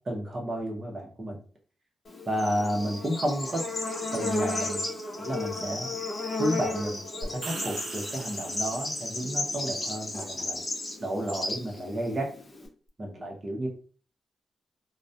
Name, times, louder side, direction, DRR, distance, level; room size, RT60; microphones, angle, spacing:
voice 1, 0.1-1.4 2.3-3.6 4.1-4.8 5.2-5.9 6.4-7.0 7.3-10.6 11.0-12.3 13.0-13.7, equal, 30° right, -1 dB, 0.6 m, -31 dB
Bird / Insect, 2.1-12.7, left 2 dB, 40° left, 0.7 m, -33 dB
sound 1, 7.2-9.2, right 3 dB, 75° right, 0.4 m, -40 dB
2.3 x 2.1 x 2.6 m, 0.40 s
cardioid pair, 95°, 0 cm